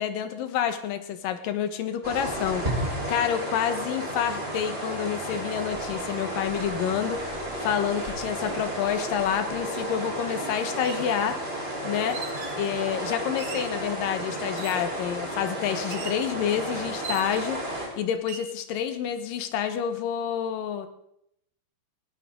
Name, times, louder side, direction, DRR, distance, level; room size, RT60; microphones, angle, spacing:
voice 1, 0.0-7.3 7.6-11.4 11.8-12.2 12.5-17.6 18.0-20.9, left 9 dB, 70° left, 8 dB, 2.9 m, -28 dB
sound 1, 2.0-17.9, right 1 dB, 15° right, 4.1 m, -32 dB
sound 2, 9.7-9.8 10.7-11.1 12.1-12.7 13.4-13.8 14.6-15.0 15.9-16.3 17.0-17.6 18.2-18.5, right 6 dB, 55° right, 1.6 m, -39 dB
20.0 x 17.0 x 3.8 m, 0.75 s
omnidirectional pair, 4.2 m